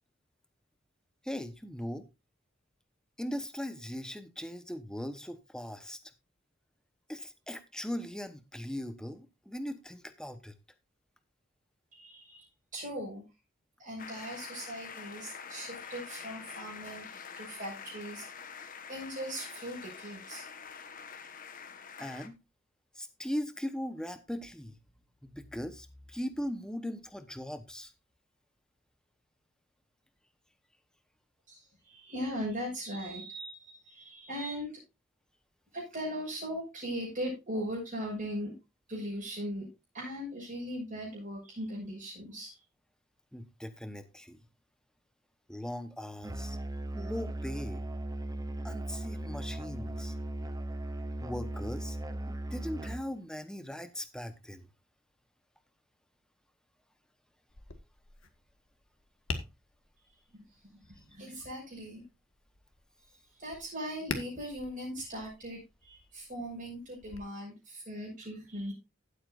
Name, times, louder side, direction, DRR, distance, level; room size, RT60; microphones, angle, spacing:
voice 1, 1.2-2.1 3.2-6.0 7.1-10.5 22.0-22.4 23.0-24.7 25.2-27.9 43.3-44.4 45.5-46.6 46.9-47.8 48.6-50.1 51.2-52.0 52.3-54.7, equal, 5° left, 1.0 m, -39 dB
voice 2, 11.9-12.5 12.7-13.2 13.8-18.3 18.9-20.5 31.5-34.7 35.7-38.5 38.9-39.7 39.9-42.6 60.3-60.4 60.8-62.0 63.4-68.7, equal, 40° right, 6.2 m, -39 dB
sound 1, 14.0-22.3, left 6 dB, 45° left, 1.2 m, -46 dB
Musical instrument, 46.2-53.1, right 1 dB, 20° right, 0.7 m, -37 dB
Tap, 57.5-67.2, left 3 dB, 80° left, 1.6 m, -46 dB
15.5 x 8.2 x 2.5 m
head